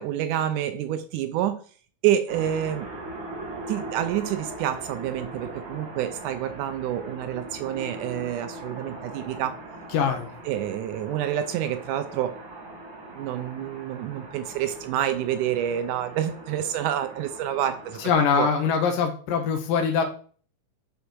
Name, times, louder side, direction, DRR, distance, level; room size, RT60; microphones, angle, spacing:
voice 1, 0.0-1.6 2.0-2.9 3.7-9.6 10.5-12.4 13.1-18.1 18.4-18.5, right 11 dB, 80° right, 10 dB, 2.0 m, -28 dB
sound 1, 2.3-18.1, right 2 dB, 40° right, 2.2 m, -40 dB
voice 2, 9.9-10.3 18.0-20.0, left 6 dB, 85° left, 4 dB, 2.6 m, -23 dB
6.8 x 6.5 x 4.6 m, 0.43 s
omnidirectional pair, 3.8 m